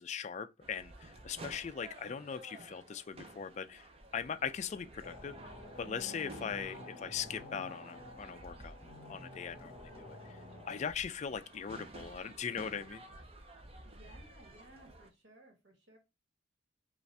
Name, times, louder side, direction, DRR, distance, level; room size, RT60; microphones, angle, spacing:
voice 1, 0.0-3.9 4.1-5.4 5.8-8.8 9.1-10.4 10.7-13.0, left 7 dB, 35° left, 0.3 m, -40 dB
sound 1, 0.6-15.1, right 2 dB, 30° right, 0.6 m, -53 dB
sound 2, 5.0-10.9, left 1 dB, ahead, 1.8 m, -50 dB
voice 2, 13.8-16.0, right 1 dB, 60° right, 1.3 m, -59 dB
5.2 x 2.4 x 3.3 m
head